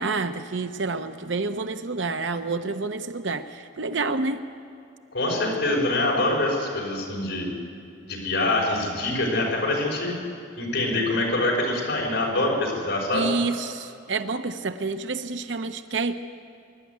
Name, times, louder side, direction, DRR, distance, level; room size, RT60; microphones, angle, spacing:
voice 1, 0.0-4.4 13.1-16.1, right 3 dB, 65° right, 9 dB, 0.8 m, -28 dB
voice 2, 5.1-7.5 8.1-10.1 10.6-13.3, left 2 dB, 65° left, -2 dB, 5.5 m, -25 dB
24.5 x 11.5 x 9.5 m, 2.5 s
head